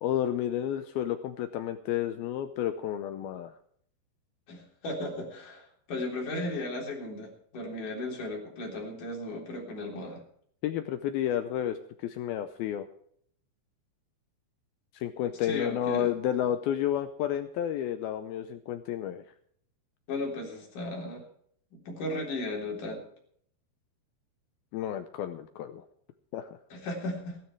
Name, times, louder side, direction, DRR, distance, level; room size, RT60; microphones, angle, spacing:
voice 1, 0.0-3.5 10.6-12.9 14.9-19.2 24.7-25.9 26.3-26.5, left 10 dB, 80° left, 9 dB, 2.3 m, -31 dB
voice 2, 4.5-10.2 15.4-16.1 20.1-21.2 21.7-23.0 26.7-27.4, left 2 dB, 50° left, 0 dB, 5.0 m, -36 dB
16.0 x 12.5 x 4.7 m, 0.65 s
omnidirectional pair, 5.0 m